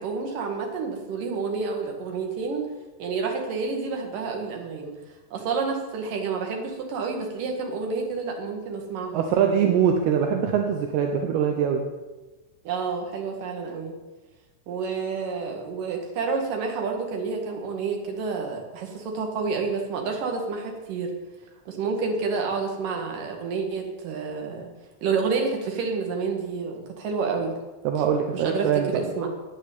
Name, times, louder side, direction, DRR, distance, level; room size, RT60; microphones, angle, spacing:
voice 1, 0.0-2.6 3.0-4.9 5.3-9.8 12.6-13.9 14.7-21.1 21.7-24.7 25.0-27.5 28.3-29.3, right 4 dB, 55° right, 2 dB, 3.0 m, -29 dB
voice 2, 9.1-11.8 27.8-28.9, right 8 dB, 75° right, 3 dB, 2.4 m, -23 dB
9.7 x 9.7 x 8.5 m, 1.2 s
omnidirectional pair, 5.7 m